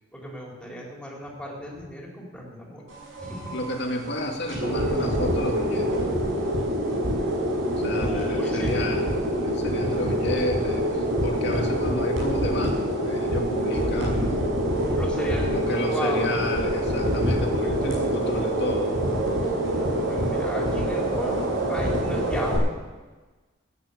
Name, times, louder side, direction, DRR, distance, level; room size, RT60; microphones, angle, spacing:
voice 1, 0.1-2.8 3.2-3.5 4.9-5.0 8.0-8.8 9.7-9.9 15.0-16.4 20.1-22.7, equal, 5° left, -3 dB, 4.0 m, -35 dB
sound 1, 2.9-22.6, equal, 70° right, 6.7 m, -26 dB
voice 2, 3.5-6.0 7.8-9.1 9.4-14.6 15.4-19.0, left 1 dB, 55° left, 1 dB, 2.5 m, -31 dB
15.5 x 10.0 x 8.3 m, 1.3 s
head